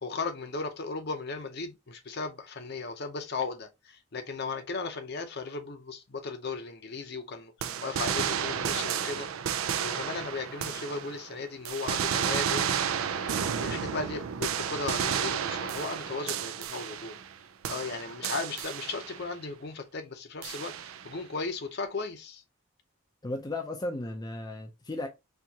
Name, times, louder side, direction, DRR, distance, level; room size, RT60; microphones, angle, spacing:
voice 1, 0.0-9.3 9.8-12.7 13.1-13.3 13.6-17.2 17.7-22.4, left 4 dB, 55° left, 0.7 m, -36 dB
sound 1, 7.6-11.3 11.6-17.4 17.6-19.3 20.4-21.1, right 8 dB, 90° right, 0.4 m, -32 dB
voice 2, 23.2-25.1, left 2 dB, 20° left, 0.4 m, -35 dB
4.4 x 2.4 x 2.8 m
head